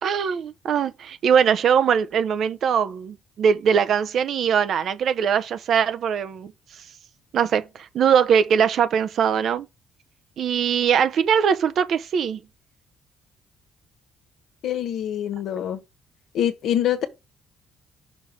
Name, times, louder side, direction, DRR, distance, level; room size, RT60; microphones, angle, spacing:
voice 1, 0.0-6.5 7.3-9.7 10.4-12.4, right 7 dB, 65° right, 0.8 m, -21 dB
voice 2, 14.6-15.8 16.3-17.1, left 10 dB, 80° left, 1.2 m, -25 dB
6.1 x 3.5 x 5.9 m
cardioid pair, 90°, 0 cm